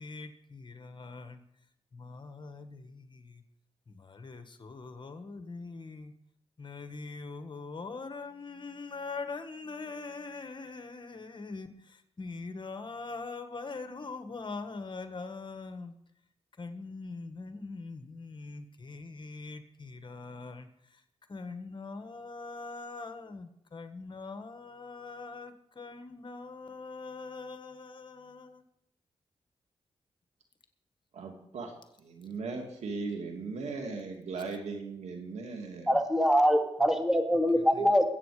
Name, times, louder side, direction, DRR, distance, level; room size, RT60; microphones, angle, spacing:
voice 1, 0.0-1.4 1.9-3.4 3.9-6.1 6.6-15.9 16.6-21.0 21.3-28.6, left 3 dB, 45° left, 8 dB, 1.6 m, -42 dB
voice 2, 31.1-31.7 32.0-35.9, right 4 dB, 90° right, 3 dB, 2.5 m, -38 dB
voice 3, 35.9-38.0, equal, 5° right, 4 dB, 2.3 m, -24 dB
21.5 x 8.5 x 5.0 m, 0.74 s
cardioid pair, 65°, 11 cm